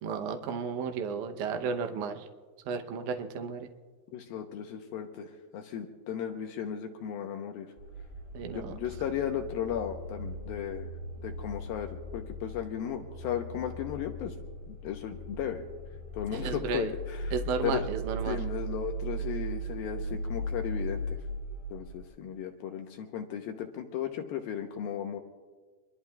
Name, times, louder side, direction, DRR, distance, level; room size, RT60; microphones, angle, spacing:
voice 1, 0.0-2.2 2.7-3.7 8.3-8.7 16.4-16.9 17.3-18.4, right 6 dB, 80° right, 5 dB, 1.7 m, -33 dB
voice 2, 4.1-7.7 8.5-10.9 11.2-14.3 14.7-15.6 16.1-17.9 18.3-21.0 21.7-25.2, left 9 dB, 75° left, 4 dB, 2.4 m, -35 dB
sound 1, 7.8-22.0, right 1 dB, 15° right, 6.5 m, -38 dB
26.0 x 22.5 x 2.3 m, 1.4 s
omnidirectional pair, 4.8 m